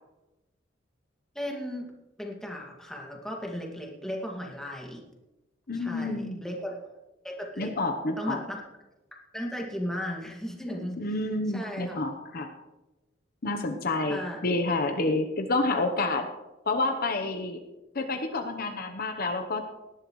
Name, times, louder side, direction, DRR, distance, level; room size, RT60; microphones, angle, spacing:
voice 1, 1.3-1.9 2.2-5.0 5.7-6.9 7.2-7.7 8.2-8.7 9.3-11.0 11.5-12.1 14.0-14.4, equal, 5° left, -1 dB, 2.1 m, -36 dB
voice 2, 5.7-6.4 7.6-8.4 11.0-12.5 13.4-16.3 16.7-17.6 17.9-19.6, left 2 dB, 50° left, 6 dB, 1.0 m, -29 dB
18.5 x 12.0 x 3.2 m, 1.0 s
head